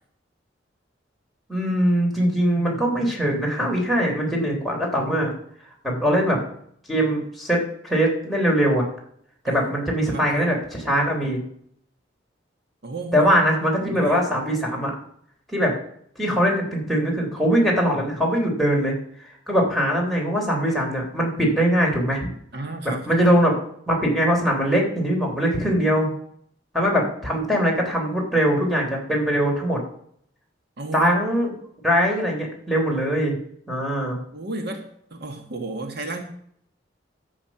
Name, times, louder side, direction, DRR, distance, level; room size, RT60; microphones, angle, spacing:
voice 1, 1.5-5.3 5.8-6.4 6.9-8.8 9.4-11.4 13.1-14.9 15.5-15.7 16.2-18.9 19.5-22.3 23.1-23.5 23.9-26.1 26.7-29.8 30.9-31.5 31.8-33.4 33.7-34.2, equal, ahead, -3 dB, 3.4 m, -21 dB
voice 2, 9.5-10.5 12.8-13.3 13.8-14.2 22.5-23.2 30.8-31.1 34.3-36.2, right 2 dB, 60° right, 4 dB, 1.6 m, -33 dB
12.0 x 8.3 x 6.0 m, 0.66 s
head